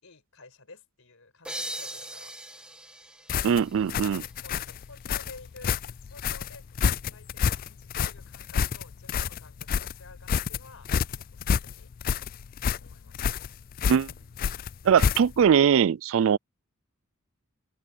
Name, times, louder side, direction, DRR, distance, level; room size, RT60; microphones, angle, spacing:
voice 1, 0.0-2.4 4.4-5.8 6.1-11.9 12.8-13.4, left 3 dB, 65° left, 5.1 m, -51 dB
sound 1, 1.4-4.9, right 1 dB, 5° right, 1.7 m, -40 dB
sound 2, 3.3-15.5, left 7 dB, 40° left, 0.3 m, -29 dB
voice 2, 3.4-4.2 13.9-14.1 14.8-16.4, right 7 dB, 60° right, 0.3 m, -21 dB
open air
head